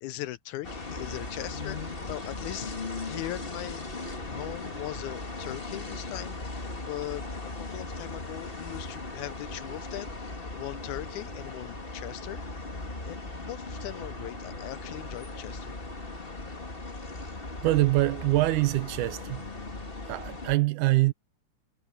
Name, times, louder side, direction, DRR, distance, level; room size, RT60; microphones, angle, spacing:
voice 1, 0.0-2.8 3.0-3.9 4.3-7.2 7.6-10.1 10.5-12.4 13.0-15.7, left 16 dB, 80° left, 1.8 m, -39 dB
sound 1, 0.6-20.6, left 3 dB, 20° left, 2.0 m, -38 dB
voice 2, 17.6-19.5 20.1-21.1, right 18 dB, 80° right, 2.1 m, -24 dB
omnidirectional pair, 3.7 m